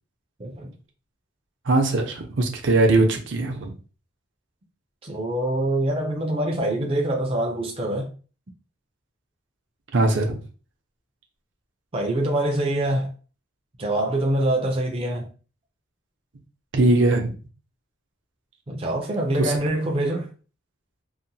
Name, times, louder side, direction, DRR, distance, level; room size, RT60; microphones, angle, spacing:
voice 1, 0.4-0.7 5.0-8.1 11.9-13.1 13.8-15.3 18.7-20.3, right 1 dB, 30° right, 0.4 m, -25 dB
voice 2, 1.7-3.7 9.9-10.4 16.7-17.3 19.4-19.6, right 2 dB, 70° right, 0.6 m, -20 dB
2.8 x 2.1 x 2.6 m
head